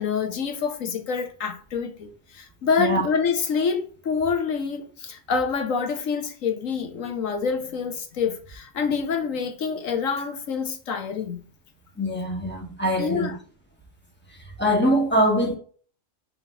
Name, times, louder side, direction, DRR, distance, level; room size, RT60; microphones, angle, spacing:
voice 1, 0.0-11.4 13.0-13.4, left 5 dB, 90° left, 1.5 m, -27 dB
voice 2, 12.0-13.3 14.3-15.6, equal, 10° left, 2.1 m, -23 dB
5.8 x 3.9 x 5.8 m
omnidirectional pair, 1.3 m